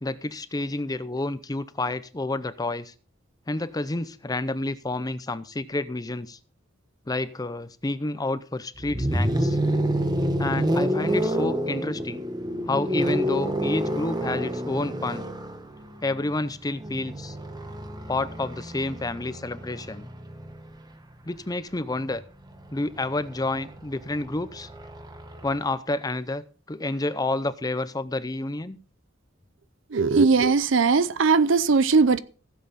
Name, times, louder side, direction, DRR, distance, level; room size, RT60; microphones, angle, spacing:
voice 1, 0.0-2.9 3.5-6.4 7.1-9.6 10.4-12.2 12.6-15.2 16.0-17.4 18.1-20.1 21.2-22.2 22.7-24.7 25.4-28.8, left 2 dB, 20° left, 0.6 m, -29 dB
sound 1, 8.8-20.7 22.0-25.6, equal, 20° right, 1.1 m, -29 dB
voice 2, 29.9-32.2, right 4 dB, 65° right, 0.6 m, -19 dB
16.0 x 7.6 x 4.2 m
head